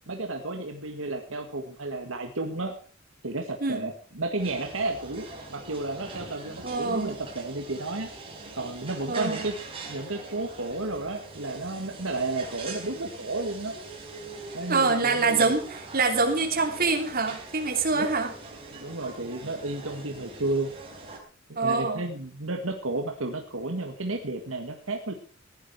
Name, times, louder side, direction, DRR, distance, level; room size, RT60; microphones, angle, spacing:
voice 1, 0.1-2.7 3.2-8.1 8.5-9.5 9.9-13.7 14.5-15.5 17.9-18.1 18.7-20.7 21.5-25.1, right 2 dB, 75° right, 4 dB, 1.7 m, -32 dB
sound 1, 4.4-21.2, right 3 dB, 30° right, 4.3 m, -42 dB
voice 2, 6.6-7.2 9.1-9.4 14.7-18.3 21.6-22.0, right 3 dB, 45° right, 4 dB, 3.0 m, -25 dB
16.5 x 11.0 x 4.7 m, 0.39 s
head